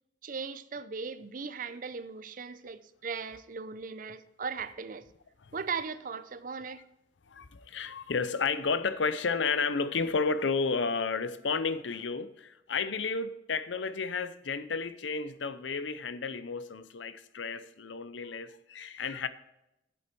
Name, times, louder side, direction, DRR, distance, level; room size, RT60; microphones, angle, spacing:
voice 1, 0.2-5.1 5.5-6.9, right 5 dB, 45° right, 0.5 m, -38 dB
voice 2, 7.3-19.3, left 4 dB, 80° left, 0.7 m, -32 dB
8.8 x 8.0 x 4.6 m
head